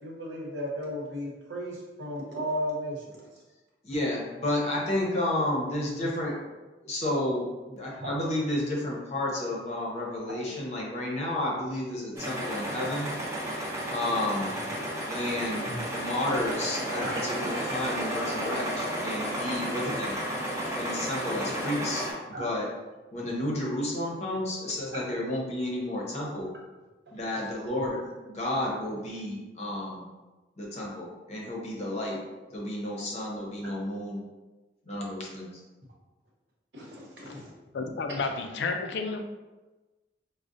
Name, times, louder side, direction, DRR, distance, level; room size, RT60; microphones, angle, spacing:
voice 1, 0.0-3.2 8.0-8.1 15.6-15.8 17.0-17.2 21.4-21.5 22.3-22.5 24.9-25.0 27.1-27.4 36.7-37.5 38.1-38.2, equal, 70° right, -3 dB, 0.9 m, -35 dB
voice 2, 3.8-6.3 6.8-13.1 13.9-14.5 15.1-20.1 20.7-22.7 23.1-26.5 27.1-28.0 28.2-30.1 30.6-32.2 32.5-34.2 34.9-35.5, left 1 dB, 35° left, -3 dB, 0.7 m, -31 dB
sound 1, 12.2-22.1, equal, 15° right, 0.6 m, -32 dB
voice 3, 37.7-39.2, left 4 dB, 65° left, 5 dB, 0.3 m, -31 dB
4.7 x 2.1 x 2.6 m, 1.2 s
head